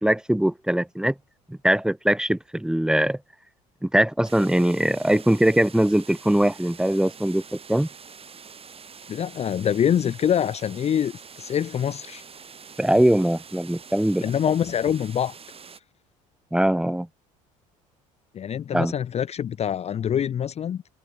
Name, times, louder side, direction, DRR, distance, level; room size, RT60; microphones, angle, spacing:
voice 1, 0.0-1.1 1.5-3.2 3.8-7.9 12.8-14.2 16.5-17.1 18.7-18.9, right 1 dB, 5° right, 2.3 m, -21 dB
sound 1, 4.2-15.8, right 6 dB, 35° right, 8.0 m, -45 dB
voice 2, 9.1-12.2 14.2-15.3 18.3-20.8, left 9 dB, 40° left, 0.7 m, -25 dB
hypercardioid pair, 75°, 17 cm